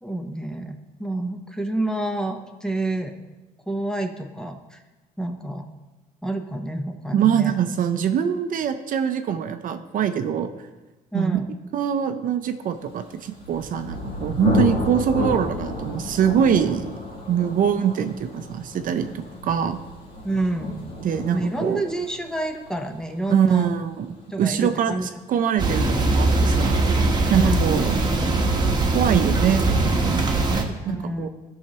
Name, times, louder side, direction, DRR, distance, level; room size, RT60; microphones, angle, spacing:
voice 1, 0.0-3.1 3.7-4.8 5.2-5.7 6.2-7.6 11.1-11.5 20.2-20.8 21.3-23.7 24.3-25.2 27.4-27.7 30.8-31.3, right 2 dB, 5° left, 5 dB, 0.7 m, -28 dB
voice 2, 7.1-10.5 11.1-11.4 11.7-16.9 17.3-19.8 21.0-21.8 23.3-27.0 27.3-28.0 28.9-31.3, right 8 dB, 55° right, 8 dB, 0.6 m, -24 dB
Thunder, 13.1-24.6, left 2 dB, 60° left, 2.3 m, -31 dB
sound 1, 25.6-30.6, right 2 dB, 25° right, 1.1 m, -21 dB
14.0 x 5.7 x 2.9 m, 1.1 s
cardioid pair, 110°, 17 cm